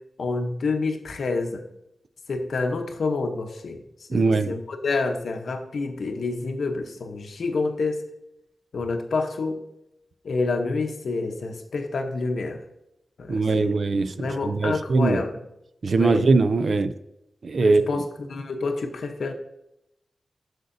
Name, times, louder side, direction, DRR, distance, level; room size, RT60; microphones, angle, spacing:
voice 1, 0.2-1.6 2.3-3.8 4.1-8.0 8.7-9.6 10.2-12.6 13.2-13.8 14.2-15.4 16.0-16.3 17.6-19.3, left 3 dB, 70° left, 5 dB, 0.8 m, -28 dB
voice 2, 4.1-4.5 13.3-15.2 15.8-16.9 17.4-17.8, right 3 dB, 50° right, 12 dB, 0.4 m, -21 dB
7.9 x 6.6 x 2.6 m, 0.83 s
wide cardioid pair, 165°, 0 cm